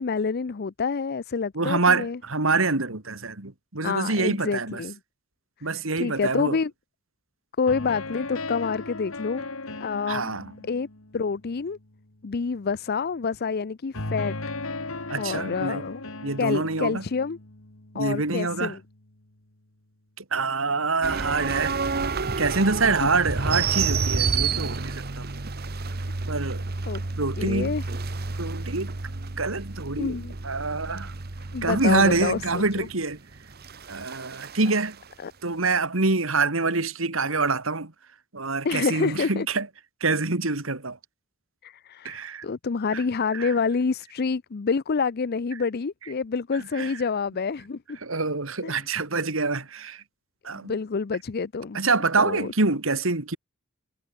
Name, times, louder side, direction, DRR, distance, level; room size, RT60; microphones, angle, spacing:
voice 1, 0.0-2.2 3.8-5.0 5.7-6.7 7.6-9.5 9.8-10.3 10.7-10.9 11.1-11.8 12.2-14.4 15.2-16.0 16.4-17.4 17.9-18.8 23.0-23.1 26.9-27.0 27.4-27.8 30.0-30.3 31.5-32.9 35.2-35.3 38.6-39.5 41.6-48.0 48.6-48.8 50.6-51.8 52.2-52.5, left 5 dB, 50° left, 0.5 m, -27 dB
voice 2, 1.5-4.8 5.6-6.6 10.1-10.5 15.1-15.8 16.2-17.0 17.9-18.8 20.2-21.8 22.4-25.3 26.3-26.6 27.2-27.8 28.4-28.9 29.4-30.2 30.4-31.1 31.6-33.2 33.9-35.0 35.4-37.9 38.3-39.7 40.0-41.0 42.0-42.4 42.9-43.0 43.3-43.5 46.7-46.9 48.0-50.0 50.4-50.7 51.7-53.4, right 3 dB, 70° right, 2.4 m, -26 dB
sound 1, 7.7-11.8 13.9-18.9, left 2 dB, 80° left, 2.9 m, -37 dB
sound 2, 21.0-34.9, right 4 dB, 50° right, 1.2 m, -30 dB
head